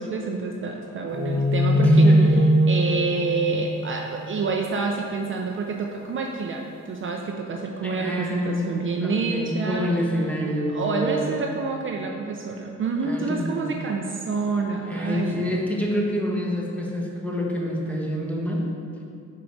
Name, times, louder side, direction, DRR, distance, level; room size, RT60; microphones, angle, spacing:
voice 1, 0.0-9.9 10.7-15.6, right 4 dB, 40° right, 1 dB, 0.5 m, -28 dB
sound 1, 1.1-4.5, equal, 65° right, 1.1 m, -20 dB
voice 2, 1.8-2.4 7.8-11.2 13.0-13.7 14.8-18.7, equal, 5° left, -3 dB, 1.1 m, -27 dB
4.9 x 4.7 x 5.2 m, 2.5 s
cardioid pair, 90°, 30 cm